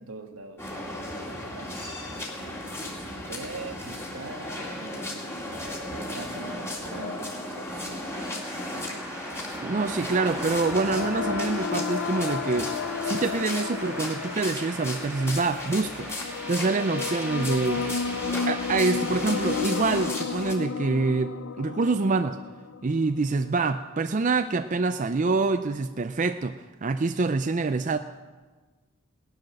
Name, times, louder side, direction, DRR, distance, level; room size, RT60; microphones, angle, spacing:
voice 1, 0.0-1.8 2.8-5.3 5.9-8.3, right 2 dB, 80° right, 5 dB, 1.6 m, -42 dB
sound 1, 0.6-20.5, left 1 dB, 10° left, 2.2 m, -36 dB
sound 2, 8.1-20.0, equal, 5° right, 2.2 m, -40 dB
voice 2, 9.6-17.9 18.5-22.4 22.8-28.0, right 3 dB, 35° right, 9 dB, 0.4 m, -26 dB
sound 3, 9.9-23.5, left 5 dB, 65° left, 0.4 m, -33 dB
18.5 x 11.5 x 6.4 m, 1.4 s
head